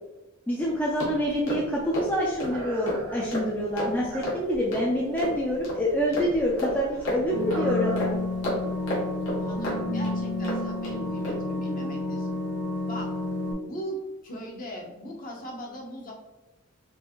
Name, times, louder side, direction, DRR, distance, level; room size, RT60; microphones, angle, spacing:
voice 1, 0.5-8.1, equal, 10° left, -4 dB, 0.4 m, -26 dB
sound 1, 0.6-10.9 11.2-11.5, equal, 60° left, 1.4 m, -33 dB
sound 2, 0.9-1.9 2.3-4.8 5.0-5.8 6.1-6.2 6.6-6.7 7.5-8.3 8.6-8.7 9.4-9.5, right 2 dB, 90° right, 0.6 m, -40 dB
sound 3, 7.3-13.5, left 2 dB, 50° right, 0.7 m, -30 dB
voice 2, 9.4-12.4 12.8-13.1 13.7-16.1, equal, 40° left, -1 dB, 0.8 m, -39 dB
4.5 x 2.6 x 2.9 m, 1.1 s
head